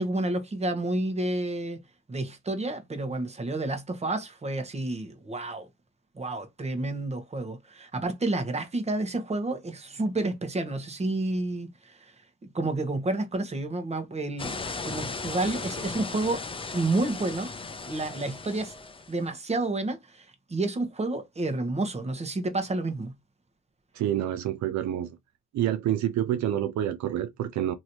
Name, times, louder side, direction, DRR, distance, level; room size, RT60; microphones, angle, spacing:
voice 1, 0.0-1.8 2.1-5.7 6.1-12.1 12.4-14.6 14.8-16.4 16.7-17.5 17.9-18.7 19.1-23.1, right 2 dB, 20° right, 1.0 m, -30 dB
sound 1, 14.4-19.2, left 4 dB, 20° left, 0.6 m, -36 dB
voice 2, 23.9-25.2 25.5-27.7, right 11 dB, 70° right, 0.6 m, -28 dB
3.1 x 2.7 x 2.8 m
cardioid pair, 90°, 30 cm